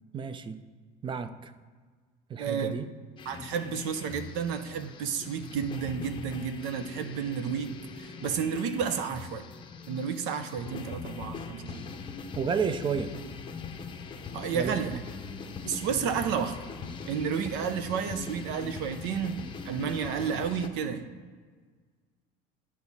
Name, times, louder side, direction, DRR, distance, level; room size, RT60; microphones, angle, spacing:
voice 1, 0.1-0.6 1.0-1.5 2.3-2.9 12.4-13.1 14.5-15.0, right 6 dB, 25° right, 11 dB, 0.4 m, -31 dB
voice 2, 2.4-2.7 3.3-9.5 9.9-11.8 14.3-14.9 15.6-16.6 17.1-19.4 19.6-21.0, right 7 dB, 75° right, 10 dB, 0.7 m, -31 dB
sound 1, 3.2-20.7, left 5 dB, 25° left, 0.6 m, -41 dB
10.5 x 4.8 x 4.1 m, 1.5 s
cardioid pair, 135°, 19 cm